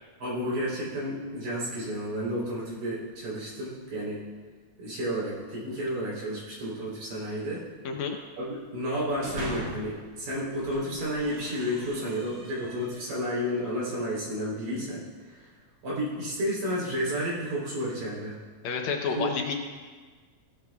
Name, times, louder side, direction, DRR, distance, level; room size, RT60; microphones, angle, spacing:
voice 1, 0.2-4.3 4.8-7.6 8.4-15.5 15.8-18.4 19.1-19.3, equal, 75° right, -6 dB, 5.2 m, -31 dB
voice 2, 7.9-8.2 18.6-19.5, left 5 dB, 70° left, 3 dB, 2.0 m, -29 dB
sound 1, 8.9-10.0 10.5-13.3, right 1 dB, 45° right, 3.1 m, -41 dB
16.0 x 13.0 x 2.4 m, 1.5 s
omnidirectional pair, 3.5 m